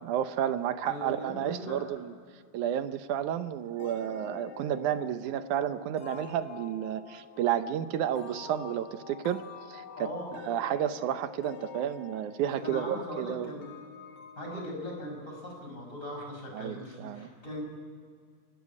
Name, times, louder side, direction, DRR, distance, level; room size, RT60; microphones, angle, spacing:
voice 1, 0.0-2.1 2.5-10.1 10.5-13.5 16.5-17.3, right 10 dB, 75° right, 11 dB, 2.3 m, -31 dB
voice 2, 0.8-2.0 9.9-10.3 12.6-13.7 14.4-17.6, left 1 dB, 25° left, 0 dB, 6.1 m, -39 dB
sound 1, 3.8-16.2, left 6 dB, 55° left, 2.3 m, -48 dB
28.5 x 12.5 x 9.6 m, 2.1 s
omnidirectional pair, 3.7 m